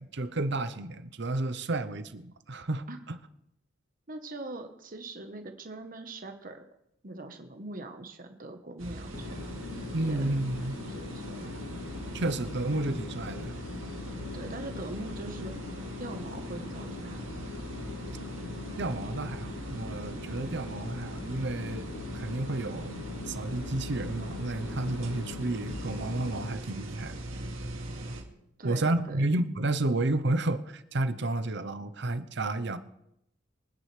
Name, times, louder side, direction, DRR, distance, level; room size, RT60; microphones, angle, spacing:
voice 1, 0.0-3.2 9.9-10.8 12.1-13.5 18.8-27.2 28.6-32.8, right 2 dB, 60° right, 0.8 m, -31 dB
voice 2, 4.1-6.6 7.0-9.4 10.0-10.3 10.9-11.7 14.3-15.5 16.0-17.6 28.6-29.4, right 2 dB, 45° right, 1.1 m, -42 dB
sound 1, 8.8-28.2, right 1 dB, 85° right, 2.2 m, -41 dB
sound 2, 9.1-26.5, left 3 dB, 85° left, 1.0 m, -42 dB
24.5 x 9.8 x 3.3 m
head